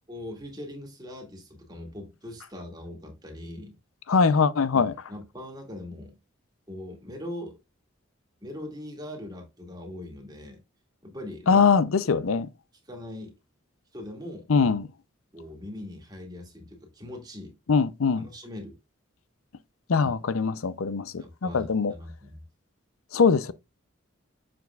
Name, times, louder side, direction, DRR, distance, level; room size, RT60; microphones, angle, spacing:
voice 1, 0.1-3.8 4.7-6.2 6.7-7.6 8.4-10.6 11.0-11.7 12.9-13.3 13.9-14.7 15.3-17.5 18.2-18.7 20.0-20.1 21.2-22.4, left 1 dB, 20° right, 2.0 m, -41 dB
voice 2, 4.1-4.9 11.5-12.5 14.5-14.8 17.7-18.2 19.9-21.9 23.1-23.5, left 5 dB, 85° left, 0.6 m, -22 dB
6.9 x 6.1 x 2.3 m
head